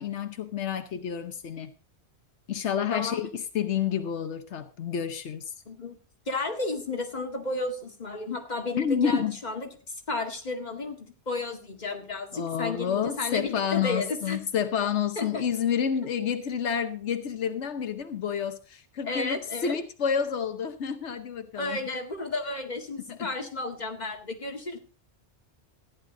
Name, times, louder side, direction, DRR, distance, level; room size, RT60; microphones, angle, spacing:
voice 1, 0.0-1.7 2.5-5.5 8.8-9.4 12.3-21.8 23.1-23.5, left 7 dB, 85° left, 1.2 m, -29 dB
voice 2, 5.7-6.0 6.3-9.7 10.1-14.4 15.2-15.4 19.0-19.8 21.5-24.8, left 3 dB, 40° left, 2.1 m, -33 dB
14.5 x 10.5 x 3.8 m
omnidirectional pair, 1.1 m